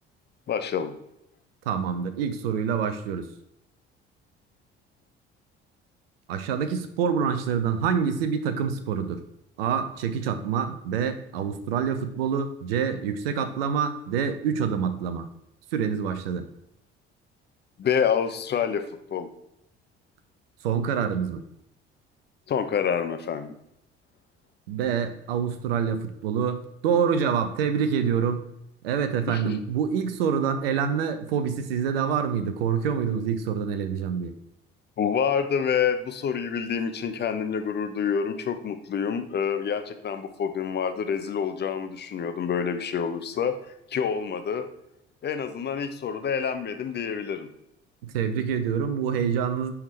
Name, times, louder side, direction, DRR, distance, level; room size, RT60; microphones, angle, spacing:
voice 1, 0.5-0.9 17.8-18.8 19.1-19.3 22.5-23.5 29.3-29.6 35.0-43.5 43.9-44.6 45.2-47.5, left 7 dB, 35° left, 8 dB, 0.7 m, -27 dB
voice 2, 1.7-3.3 6.3-9.2 9.6-15.3 15.7-16.5 20.6-21.4 24.7-28.5 28.8-34.3 48.0-49.7, right 7 dB, 70° right, 10 dB, 0.7 m, -26 dB
10.0 x 3.6 x 3.2 m, 0.77 s
figure-of-eight pair, 55°, 31 cm